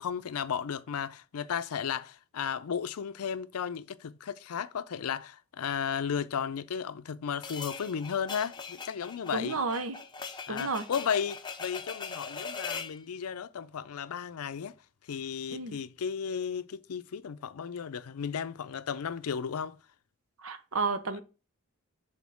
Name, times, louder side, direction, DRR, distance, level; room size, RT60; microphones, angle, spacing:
voice 1, 0.0-9.6 10.5-14.7 15.1-19.8, left 7 dB, 90° left, 0.5 m, -34 dB
sound 1, 7.4-13.0, left 5 dB, 20° left, 0.6 m, -41 dB
voice 2, 9.3-10.0 10.5-10.8 15.5-15.8 20.4-21.2, right 4 dB, 75° right, 0.9 m, -31 dB
6.3 x 3.8 x 5.8 m
head